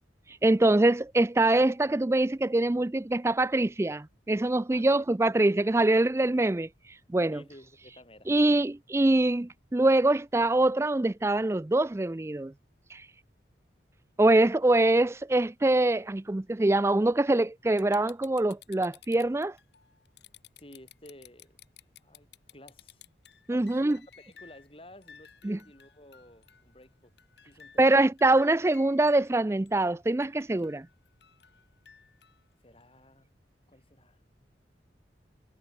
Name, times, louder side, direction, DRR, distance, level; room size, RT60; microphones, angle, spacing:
voice 1, 0.4-6.7 7.1-7.4 8.3-12.5 12.9-13.0 14.2-19.5 23.5-24.0 25.4-25.6 27.8-30.9, right 2 dB, 15° right, 0.3 m, -24 dB
voice 2, 4.7-5.1 5.9-6.1 7.3-8.3 20.6-21.6 22.0-23.0 23.5-27.1 27.4-27.9 32.6-33.3 33.7-34.2, left 1 dB, 30° left, 7.8 m, -53 dB
sound 1, 17.8-24.7 25.0-26.8 27.2-29.3 29.7-29.8 30.2-32.4 32.8-32.9, left 9 dB, 65° left, 4.1 m, -55 dB
head